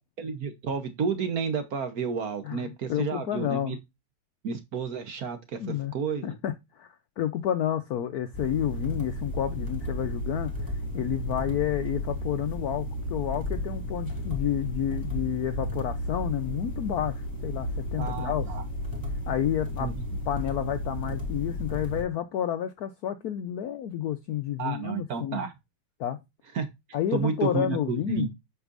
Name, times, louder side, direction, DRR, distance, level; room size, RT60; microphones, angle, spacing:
voice 1, 0.2-3.8 4.4-6.3 18.0-18.6 19.8-19.9 24.6-25.5 26.5-26.7 27.1-28.3, right 5 dB, 55° right, 1.2 m, -31 dB
voice 2, 2.4-3.8 5.6-5.9 6.2-6.9 7.2-18.5 19.3-19.9 20.3-25.4 26.0-26.2 26.9-28.3, left 10 dB, 75° left, 0.8 m, -30 dB
sound 1, 8.3-22.0, left 1 dB, 10° left, 2.0 m, -33 dB
8.0 x 5.4 x 2.5 m
omnidirectional pair, 2.2 m